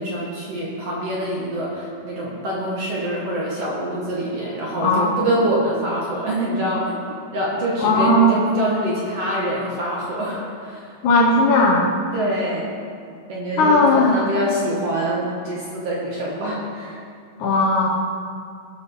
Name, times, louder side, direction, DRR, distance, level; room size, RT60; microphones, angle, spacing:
voice 1, 0.0-7.0 7.3-10.8 12.1-12.7 13.3-17.0, right 1 dB, 55° right, -5 dB, 1.8 m, -25 dB
voice 2, 4.8-5.1 7.8-8.4 11.0-11.9 13.6-14.2 17.4-17.9, left 2 dB, 70° left, -1 dB, 1.9 m, -16 dB
17.0 x 5.8 x 4.5 m, 2.3 s
omnidirectional pair, 4.6 m